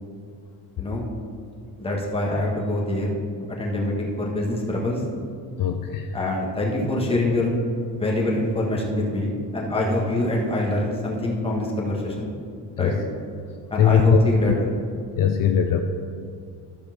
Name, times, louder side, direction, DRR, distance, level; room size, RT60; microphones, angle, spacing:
voice 1, 0.8-1.1 1.8-3.1 3.5-5.0 6.1-7.5 7.9-12.3 12.8-13.0 13.7-14.7, left 1 dB, 15° left, -3 dB, 1.7 m, -25 dB
voice 2, 5.6-6.1 12.8-12.9 13.8-14.5 15.2-15.8, left 7 dB, 55° left, 5 dB, 0.6 m, -20 dB
13.0 x 5.1 x 6.0 m, 2.4 s
cardioid pair, 165°, 39 cm